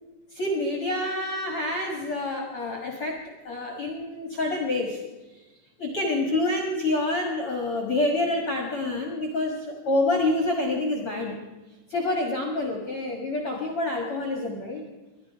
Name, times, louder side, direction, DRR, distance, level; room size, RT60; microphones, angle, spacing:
voice 1, 0.3-3.2 3.4-5.0 5.8-11.4 11.9-14.8, left 2 dB, 65° left, 1 dB, 1.4 m, -27 dB
23.0 x 11.0 x 4.6 m, 1.1 s
omnidirectional pair, 5.0 m